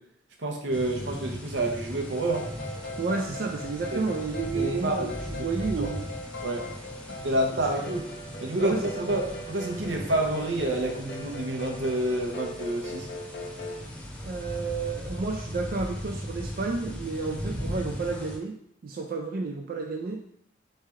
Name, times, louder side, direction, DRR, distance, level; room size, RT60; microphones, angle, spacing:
voice 1, 0.4-2.5 3.9-4.2 4.5-5.1 5.4-5.5 5.8-5.9 6.4-6.7 7.2-8.1 8.4-13.1, right 1 dB, 80° right, 2 dB, 0.8 m, -28 dB
sound 1, 0.7-18.4, equal, 5° left, 0.6 m, -38 dB
sound 2, 2.1-13.8, left 1 dB, 65° left, 0.8 m, -40 dB
voice 2, 3.0-6.1 7.1-7.4 8.6-9.1 14.2-20.2, right 4 dB, 55° right, 3 dB, 0.4 m, -31 dB
4.3 x 3.2 x 3.6 m, 0.70 s
head